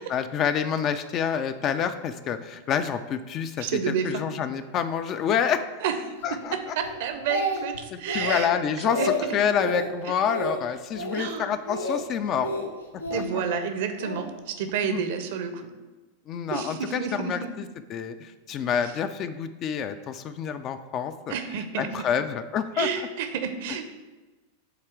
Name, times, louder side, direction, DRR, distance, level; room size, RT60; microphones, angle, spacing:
voice 1, 0.0-5.8 6.2-6.5 7.9-12.5 13.1-13.2 14.8-15.1 16.3-21.3 21.8-23.1, left 8 dB, 35° left, 10 dB, 0.3 m, -28 dB
voice 2, 3.6-4.2 5.8-8.5 9.0-9.4 10.1-10.2 11.1-11.5 13.1-15.6 16.5-17.5 21.3-21.9 22.8-23.9, right 7 dB, 50° right, 8 dB, 0.6 m, -30 dB
Speech, 6.8-7.8 8.1-8.5 8.8-9.2 9.6-9.9 10.3-10.6 10.9-11.3 11.7-12.0 12.4-13.2 14.0-14.3, left 1 dB, 80° left, 0.7 m, -29 dB
7.9 x 3.0 x 4.6 m, 1.2 s
figure-of-eight pair, 90°, 0 cm